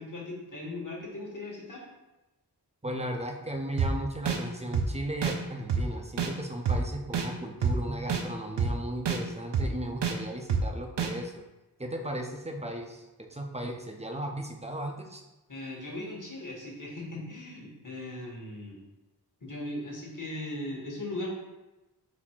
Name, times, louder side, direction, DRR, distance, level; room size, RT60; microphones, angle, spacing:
voice 1, 0.0-1.8 15.5-18.8 19.4-21.3, left 1 dB, 50° left, -2 dB, 1.2 m, -38 dB
voice 2, 2.8-11.4 11.8-15.2, right 1 dB, 15° right, 3 dB, 0.5 m, -36 dB
sound 1, 3.8-3.9 4.3-4.4 4.7-4.9 5.2-5.3 5.7-5.8 6.2-6.3 6.7-6.8 7.1-7.3 7.6-7.7 8.1-8.2 8.6-8.7 9.0-9.2 9.5-9.7 10.0-10.1 10.5-10.6 11.0-11.1, right 6 dB, 80° right, 0.5 m, -26 dB
4.1 x 2.7 x 4.3 m, 1.0 s
wide cardioid pair, 65°, 41 cm